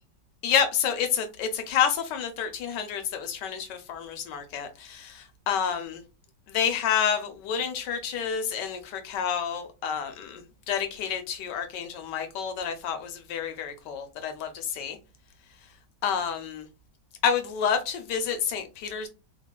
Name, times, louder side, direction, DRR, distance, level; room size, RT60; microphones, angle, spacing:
voice 1, 0.4-6.0 6.5-15.0 16.0-16.6 17.2-19.1, left 7 dB, 75° left, 1.2 m, -29 dB
3.4 x 2.2 x 2.3 m
omnidirectional pair, 1.9 m